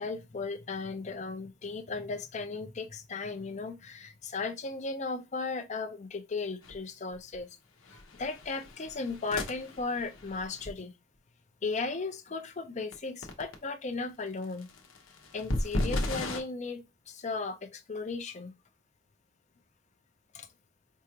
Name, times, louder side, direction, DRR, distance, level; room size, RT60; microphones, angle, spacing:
voice 1, 0.0-7.5 8.2-10.9 11.6-14.7 15.3-18.5 20.3-20.5, left 3 dB, 35° left, 0.5 m, -36 dB
sound 1, 6.6-6.7 7.1-7.4 7.8-10.7 12.9-13.0 13.2-13.5 14.4-16.4, left 1 dB, 90° left, 0.9 m, -35 dB
4.6 x 2.4 x 2.9 m
head